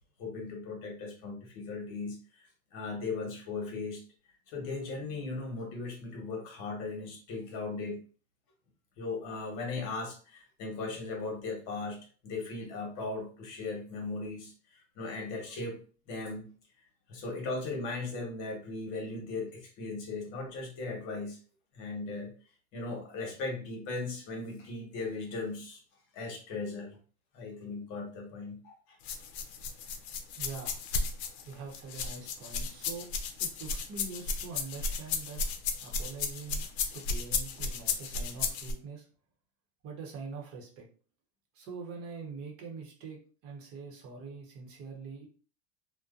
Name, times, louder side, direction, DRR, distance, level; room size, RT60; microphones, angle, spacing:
voice 1, 0.2-4.0 4.5-8.0 9.0-15.8 16.1-16.4 17.1-21.4 21.7-22.3 22.7-25.8 26.1-27.0 27.3-29.0, left 3 dB, 55° left, 1 dB, 1.0 m, -38 dB
sound 1, 29.0-38.7, left 4 dB, 80° left, 0.5 m, -34 dB
voice 2, 30.3-30.8 31.2-33.1 33.4-35.4 35.8-36.7 36.9-39.1 39.8-40.9 41.5-45.3, right 4 dB, 45° right, 0 dB, 0.8 m, -44 dB
2.6 x 2.1 x 2.4 m, 0.39 s
supercardioid pair, 140°, 32 cm